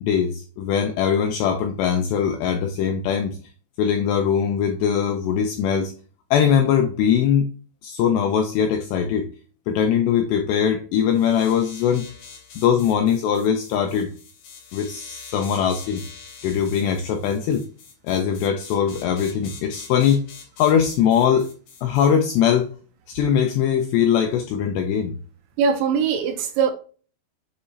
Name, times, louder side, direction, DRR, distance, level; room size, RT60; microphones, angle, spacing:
voice 1, 0.0-3.4 3.8-5.9 6.3-7.5 7.8-9.3 9.7-12.1 12.6-14.1 14.7-16.0 16.4-17.6 18.0-20.2 20.6-21.5 21.8-22.7 23.1-25.1, left 8 dB, 85° left, 5 dB, 2.5 m, -21 dB
sound 1, 11.1-22.1, left 6 dB, 60° left, 3.6 m, -44 dB
voice 2, 25.6-26.7, right 6 dB, 80° right, 7 dB, 2.8 m, -21 dB
7.4 x 4.7 x 2.7 m, 0.38 s
omnidirectional pair, 5.6 m